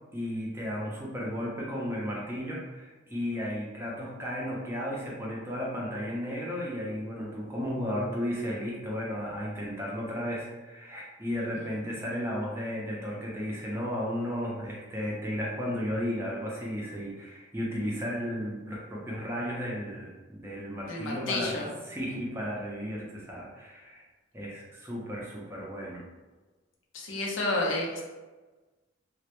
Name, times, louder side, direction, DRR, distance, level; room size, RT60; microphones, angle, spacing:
voice 1, 0.1-24.0 24.3-26.0, equal, 10° right, -4 dB, 0.4 m, -34 dB
voice 2, 20.9-21.7 26.9-28.0, left 2 dB, 80° left, -2 dB, 0.5 m, -30 dB
2.1 x 2.0 x 2.9 m, 1.3 s
head